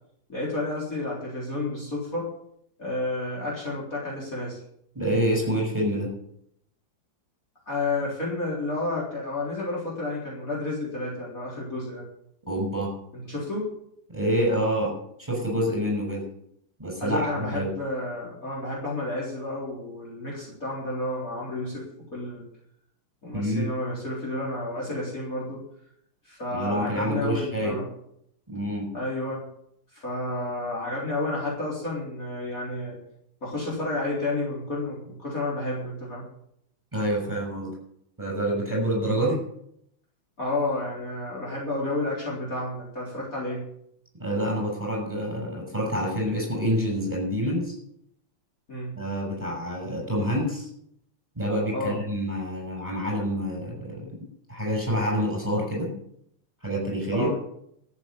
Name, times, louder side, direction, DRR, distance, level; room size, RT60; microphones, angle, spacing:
voice 1, 0.3-2.3 2.8-4.6 7.7-12.1 13.1-13.7 17.0-21.8 22.1-22.4 23.2-25.6 26.2-27.9 28.9-29.4 29.9-33.0 33.4-36.2 40.4-43.6 48.7-48.9 51.7-52.0 57.1-57.4, left 2 dB, 40° left, -4 dB, 4.3 m, -31 dB
voice 2, 4.9-6.1 12.5-12.9 14.1-14.9 15.2-16.2 16.8-17.7 23.3-23.7 26.5-27.8 28.5-28.9 36.9-37.7 38.2-39.4 44.2-47.7 48.9-50.7 51.3-54.0 54.5-55.9 56.6-57.3, equal, 10° right, -3 dB, 6.8 m, -27 dB
14.0 x 7.6 x 9.1 m, 0.73 s
omnidirectional pair, 2.4 m